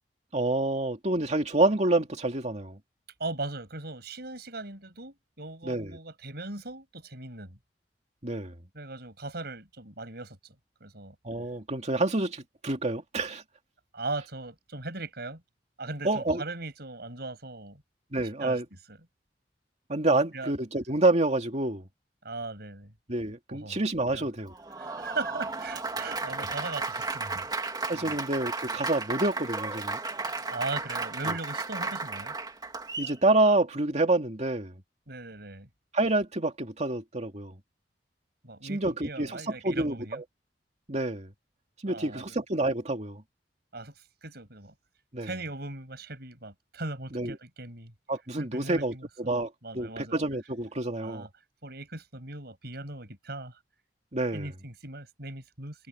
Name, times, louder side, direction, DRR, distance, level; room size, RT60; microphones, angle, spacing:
voice 1, 0.3-2.8 5.6-6.0 8.2-8.5 11.2-13.4 16.0-16.4 18.1-18.6 19.9-21.9 23.1-24.5 27.9-30.0 31.3-31.4 33.0-34.7 35.9-37.5 38.6-40.2 40.9-41.3 41.8-43.2 45.1-45.3 47.1-47.4 48.1-51.3 54.1-54.5, right 2 dB, 40° right, 2.5 m, -28 dB
voice 2, 3.2-7.6 8.7-10.5 10.8-11.1 13.9-15.4 15.8-17.8 18.4-18.6 18.9-19.0 20.3-20.5 22.2-22.9 23.5-23.8 24.1-24.3 24.8-27.5 27.9-28.2 30.5-32.3 35.1-35.7 38.4-40.2 41.9-42.4 43.7-44.7 45.2-47.9 48.4-50.2 51.0-51.3 51.6-53.6 54.3-55.9, right 2 dB, 65° right, 6.5 m, -39 dB
Applause, 24.5-33.2, right 3 dB, 25° right, 2.4 m, -34 dB
head